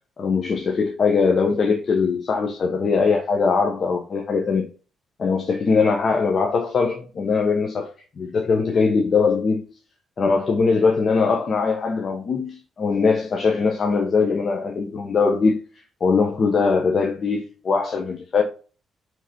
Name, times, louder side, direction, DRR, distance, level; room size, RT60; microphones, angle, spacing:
voice 1, 0.2-4.7 5.2-9.6 10.2-15.6 16.0-18.4, left 4 dB, 45° left, 1.1 m, -21 dB
5.2 x 3.9 x 5.4 m
cardioid pair, 90°, 0 cm